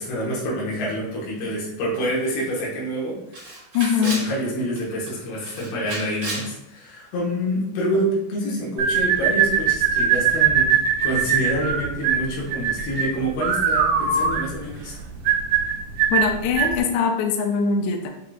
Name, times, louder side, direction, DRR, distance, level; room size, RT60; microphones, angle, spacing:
voice 1, 0.0-3.6 4.0-10.8 11.0-14.9, equal, 70° left, -4 dB, 2.9 m, -27 dB
Camera, 2.2-2.3 2.6-2.7 3.3-4.3 4.7-5.1 5.4-6.5, right 2 dB, 55° right, 1.7 m, -33 dB
voice 2, 3.7-4.2 16.1-18.1, left 6 dB, 90° left, 3 dB, 2.3 m, -22 dB
sound 1, 8.8-16.8, right 7 dB, 80° right, 2.5 m, -21 dB
7.5 x 2.8 x 2.4 m, 0.84 s
omnidirectional pair, 5.2 m